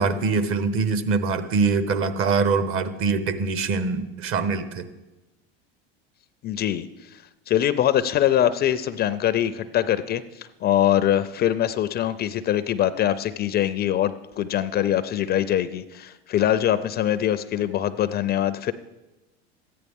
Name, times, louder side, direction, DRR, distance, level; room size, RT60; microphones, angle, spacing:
voice 1, 0.0-4.8, right 4 dB, 45° right, 11 dB, 0.9 m, -23 dB
voice 2, 6.4-18.7, left 11 dB, 35° left, 13 dB, 0.4 m, -23 dB
13.5 x 9.5 x 3.5 m, 1.0 s
supercardioid pair, 100°, 30 cm